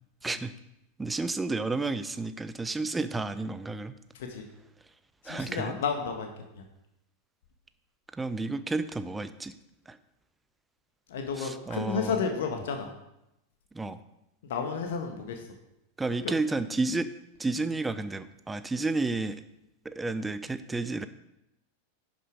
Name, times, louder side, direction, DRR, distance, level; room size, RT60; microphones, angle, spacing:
voice 1, 0.2-0.5 1.0-3.9 5.3-5.8 8.1-9.5 9.9-10.0 11.3-12.2 13.7-14.0 16.0-17.1 17.4-19.4 19.8-21.1, right 3 dB, 10° right, 12 dB, 0.6 m, -31 dB
voice 2, 5.2-6.3 6.5-6.6 11.1-12.9 14.5-15.4, left 5 dB, 55° left, 4 dB, 1.4 m, -31 dB
11.0 x 6.3 x 4.9 m, 0.86 s
figure-of-eight pair, 90°, 0 cm